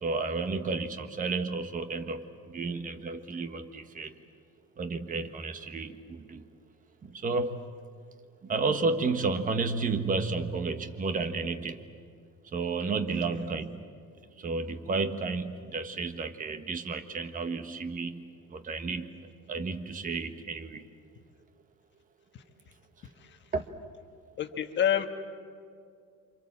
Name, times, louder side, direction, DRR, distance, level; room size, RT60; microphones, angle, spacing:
voice 1, 0.0-4.1 4.8-6.4 7.0-7.6 8.4-11.9 12.5-13.8 14.4-19.1 19.5-20.8 23.5-23.7, right 4 dB, 30° right, 8 dB, 1.4 m, -32 dB
voice 2, 13.1-13.4 22.3-22.4 23.2-23.4 24.4-25.1, left 10 dB, 40° left, 6 dB, 1.5 m, -29 dB
28.5 x 26.0 x 7.4 m, 2.2 s
cardioid pair, 160°, 29 cm